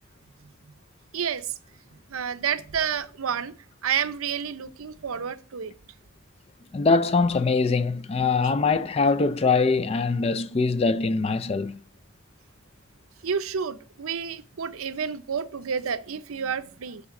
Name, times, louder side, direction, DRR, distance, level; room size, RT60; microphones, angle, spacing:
voice 1, 1.1-1.5 2.1-3.6 3.8-5.7 13.2-17.0, right 7 dB, 85° right, 0.6 m, -30 dB
voice 2, 6.7-11.8, left 4 dB, 30° left, 0.3 m, -23 dB
11.5 x 4.2 x 3.7 m
head